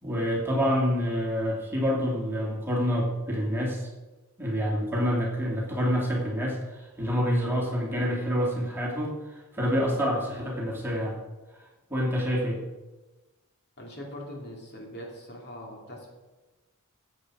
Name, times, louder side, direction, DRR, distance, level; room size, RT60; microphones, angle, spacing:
voice 1, 0.0-3.9 4.4-11.1 11.9-12.6, equal, 10° right, -3 dB, 2.6 m, -27 dB
voice 2, 13.8-16.1, equal, 50° left, -1 dB, 2.8 m, -42 dB
15.0 x 8.1 x 4.9 m, 1.2 s
head